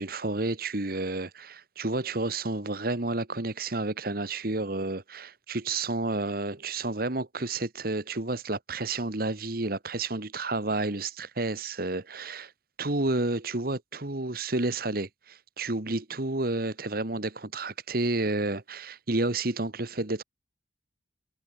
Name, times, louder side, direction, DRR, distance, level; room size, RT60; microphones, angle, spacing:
voice 1, 0.0-12.5 12.8-20.2, right 2 dB, 55° right, 1.8 m, -30 dB
head